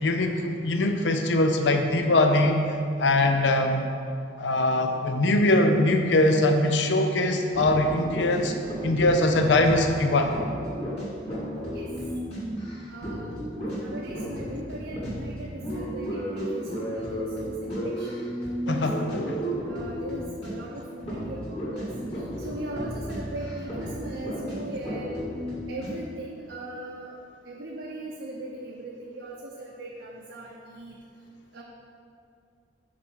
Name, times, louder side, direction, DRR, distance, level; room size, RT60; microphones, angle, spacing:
voice 1, 0.0-2.6 3.0-3.8 4.4-8.5 8.8-10.3 18.7-18.9, left 2 dB, 80° left, 5 dB, 0.6 m, -22 dB
sound 1, 7.4-20.7 21.0-25.9, equal, 35° left, 2.0 m, -33 dB
voice 2, 12.9-13.3 13.7-18.2 18.6-21.9 22.4-25.1 25.7-27.1 27.4-31.0 31.5-31.6, right 1 dB, 90° right, -3 dB, 0.8 m, -39 dB
5.9 x 4.9 x 6.2 m, 2.3 s
head